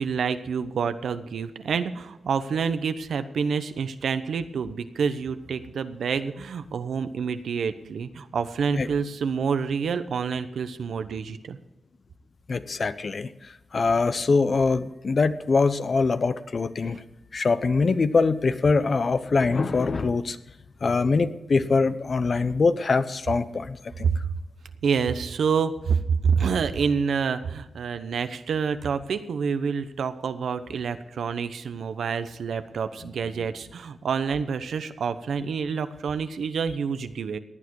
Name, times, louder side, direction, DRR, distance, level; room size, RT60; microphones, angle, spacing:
voice 1, 0.0-11.6 24.0-24.2 24.8-37.4, right 6 dB, 80° right, 10 dB, 0.9 m, -27 dB
voice 2, 12.5-13.3 13.7-17.0 17.3-20.4 20.8-24.1, left 4 dB, 55° left, 12 dB, 0.8 m, -23 dB
17.0 x 9.5 x 4.7 m, 0.94 s
cardioid pair, 50°, 0 cm